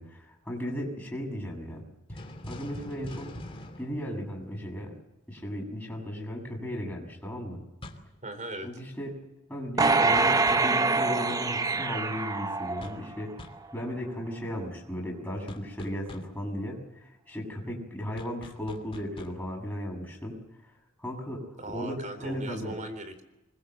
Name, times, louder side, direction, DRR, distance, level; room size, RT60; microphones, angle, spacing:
voice 1, 0.0-1.8 2.5-3.4 3.8-4.9 5.3-7.6 8.6-9.2 9.5-13.3 13.7-20.4 21.0-22.7, equal, 10° left, -1 dB, 6.9 m, -36 dB
sound 1, 2.1-4.9 7.8-8.2 10.2-10.8 12.8-13.1 13.4-13.7 15.5-16.4 18.2-19.4, left 1 dB, 25° left, 2.8 m, -44 dB
voice 2, 8.2-8.7 21.6-23.2, right 1 dB, 40° right, 10 dB, 3.8 m, -39 dB
sound 2, 9.8-13.2 13.7-13.8, right 3 dB, 15° right, 0.9 m, -25 dB
25.0 x 22.0 x 8.0 m, 0.92 s
head